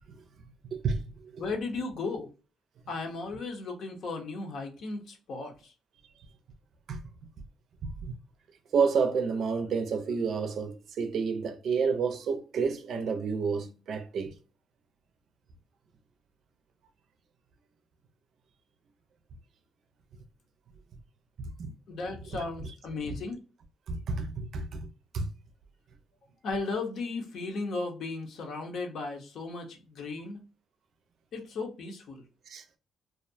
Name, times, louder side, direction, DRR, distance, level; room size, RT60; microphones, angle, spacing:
voice 1, 0.7-1.4 6.9-7.0 8.0-8.2 8.7-14.3 21.4-21.7 22.3-22.7 23.9-24.8 25.1-25.3 32.5-32.6, right 5 dB, 65° right, 0.5 m, -30 dB
voice 2, 1.4-2.3 2.9-5.7 21.9-23.4 26.4-30.4 31.3-32.2, left 3 dB, 70° left, 0.7 m, -35 dB
2.4 x 2.1 x 2.5 m
cardioid pair, 90°, 0 cm